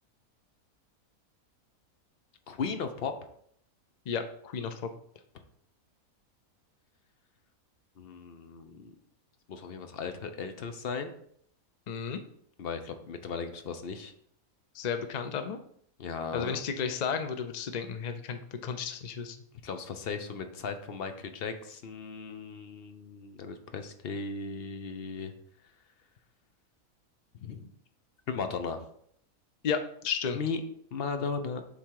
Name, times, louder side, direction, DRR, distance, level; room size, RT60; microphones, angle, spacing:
voice 1, 2.5-3.1 8.0-8.9 9.5-11.1 12.6-14.1 16.0-16.6 19.6-25.3 27.4-27.7 28.3-28.8 30.3-30.6 30.9-31.6, left 5 dB, 55° left, 7 dB, 0.7 m, -36 dB
voice 2, 4.1-4.9 11.9-12.2 14.7-15.6 16.3-19.4 29.6-30.4, left 6 dB, 90° left, 8 dB, 0.3 m, -33 dB
7.1 x 3.8 x 4.7 m, 0.66 s
omnidirectional pair, 1.5 m